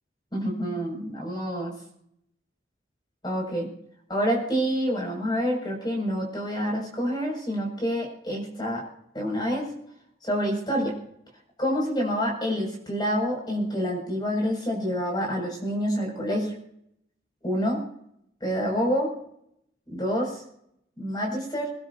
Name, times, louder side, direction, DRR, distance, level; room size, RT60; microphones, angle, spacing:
voice 1, 0.3-1.7 3.2-3.7 4.1-8.8 9.1-9.7 10.2-10.9 11.6-16.5 17.4-17.8 18.4-19.1 19.9-20.4 21.0-21.7, equal, 25° left, 0 dB, 6.8 m, -27 dB
28.0 x 12.5 x 2.9 m, 0.73 s
head